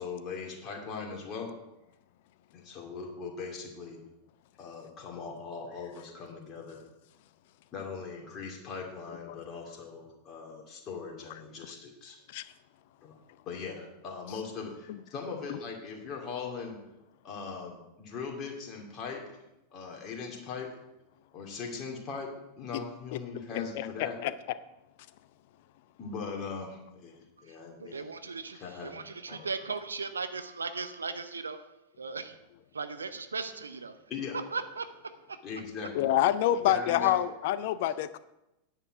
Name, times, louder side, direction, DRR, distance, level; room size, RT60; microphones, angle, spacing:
voice 1, 0.0-1.5 2.5-4.0 4.6-6.8 7.7-12.2 13.0-13.2 13.5-16.8 17.2-19.2 19.7-20.7 21.3-22.3 22.6-24.2 26.0-27.1 27.4-28.0 28.5-29.5 34.1-34.4 35.4-36.1 36.5-37.2, left 5 dB, 30° left, 1 dB, 2.6 m, -40 dB
voice 2, 23.5-23.9 24.2-24.3 36.0-38.2, left 12 dB, 50° left, 15 dB, 0.5 m, -26 dB
voice 3, 27.9-31.6 32.0-32.3 32.7-33.9 34.5-34.9, right 4 dB, 75° right, 10 dB, 0.7 m, -37 dB
9.9 x 8.4 x 4.7 m, 0.92 s
figure-of-eight pair, 90°, 0 cm